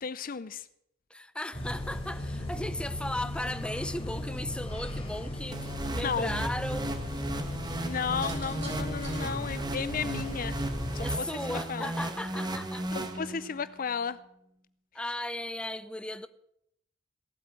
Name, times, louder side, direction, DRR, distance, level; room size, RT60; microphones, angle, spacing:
voice 1, 0.0-0.6 6.0-6.3 7.8-10.6 10.9-11.9 12.9-14.2, left 6 dB, 45° left, 0.5 m, -34 dB
voice 2, 1.1-6.9 11.0-12.9 14.9-16.3, left 1 dB, 5° left, 0.7 m, -36 dB
sound 1, 1.5-11.1, left 1 dB, 30° left, 3.2 m, -36 dB
sound 2, 5.5-13.7, right 1 dB, 20° right, 1.3 m, -35 dB
sound 3, 8.1-11.2 12.3-12.7, right 6 dB, 65° right, 5.0 m, -49 dB
18.0 x 8.7 x 7.6 m
head